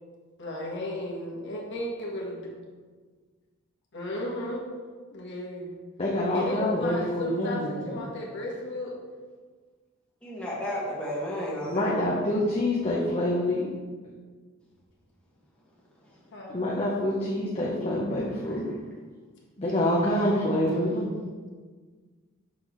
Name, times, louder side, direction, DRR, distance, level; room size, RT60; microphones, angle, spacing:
voice 1, 0.4-2.5 3.9-4.6 5.1-5.7 6.3-9.0 11.6-12.3 16.3-16.5 20.4-21.0, left 1 dB, 60° left, -2 dB, 1.3 m, -35 dB
voice 2, 6.0-7.8 11.7-13.7 16.5-18.7 19.6-21.1, left 1 dB, 30° left, -4 dB, 0.7 m, -26 dB
voice 3, 10.2-11.9 16.1-16.2 18.4-18.8, equal, 5° left, -7 dB, 1.5 m, -33 dB
6.3 x 6.0 x 3.0 m, 1.5 s
head